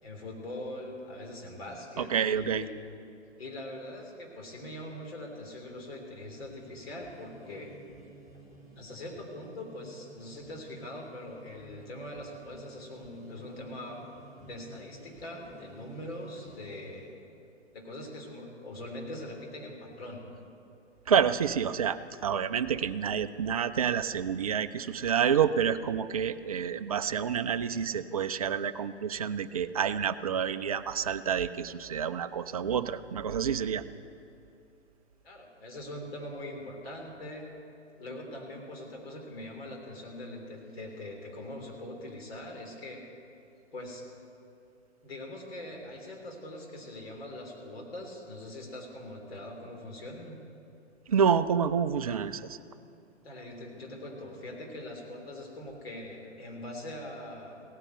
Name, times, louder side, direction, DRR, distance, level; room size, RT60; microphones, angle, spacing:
voice 1, 0.0-2.7 3.4-7.7 8.8-14.0 14.4-17.1 17.7-20.2 35.2-37.5 38.0-43.0 43.7-44.1 45.0-50.4 53.2-57.6, left 1 dB, 55° left, 0 dB, 3.5 m, -42 dB
voice 2, 2.0-2.6 21.1-33.8 51.1-52.6, right 7 dB, 30° right, 12 dB, 0.4 m, -28 dB
sound 1, 6.2-17.2, right 2 dB, 20° left, 2.9 m, -54 dB
16.5 x 9.8 x 8.1 m, 2.7 s
figure-of-eight pair, 120°, 36 cm